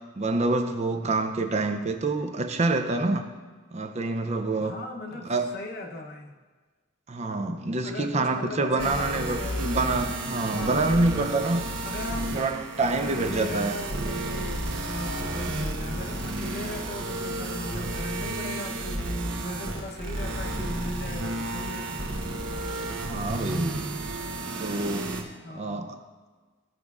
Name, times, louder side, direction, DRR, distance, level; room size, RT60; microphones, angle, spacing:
voice 1, 0.2-3.2 3.7-4.8 5.2-5.5 7.1-11.7 12.3-13.7 23.1-23.9 24.6-25.1 25.5-26.0, right 2 dB, 35° right, 6 dB, 0.4 m, -27 dB
voice 2, 4.6-6.3 7.8-9.8 10.5-11.0 11.8-12.4 13.0-21.9 25.4-25.9, left 2 dB, 50° left, 2 dB, 0.8 m, -38 dB
sound 1, 8.8-25.2, right 1 dB, 75° right, 1.0 m, -32 dB
14.5 x 5.1 x 2.4 m, 1.4 s
head